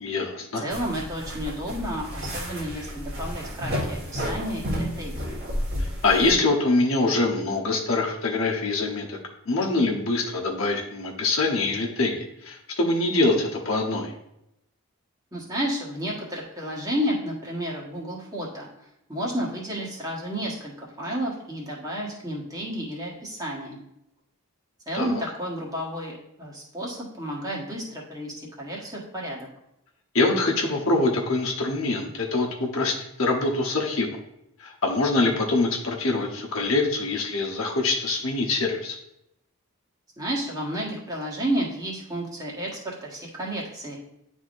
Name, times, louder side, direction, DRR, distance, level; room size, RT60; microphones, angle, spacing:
voice 1, 0.0-0.6 5.8-9.2 9.5-14.1 24.9-25.1 30.1-34.1 34.6-39.0, left 2 dB, 65° left, -1 dB, 1.0 m, -24 dB
voice 2, 0.6-5.3 15.3-18.7 19.1-20.7 21.0-23.8 24.9-29.5 40.2-44.0, equal, 15° right, -4 dB, 1.4 m, -31 dB
sound 1, 0.7-6.3, equal, 50° right, 1.7 m, -32 dB
10.5 x 3.6 x 2.6 m, 0.84 s
head